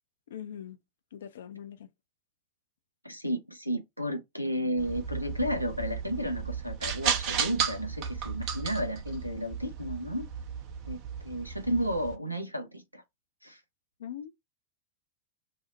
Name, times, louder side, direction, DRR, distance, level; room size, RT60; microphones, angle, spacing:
voice 1, 0.3-0.8 1.1-1.9 14.0-14.3, left 9 dB, 60° left, 0.4 m, -41 dB
voice 2, 3.0-10.3 10.9-13.0 13.4-13.6, equal, 90° right, 0.6 m, -33 dB
sound 1, 4.8-12.1, right 7 dB, 40° right, 0.6 m, -34 dB
2.9 x 2.0 x 4.0 m
figure-of-eight pair, 90°, 0 cm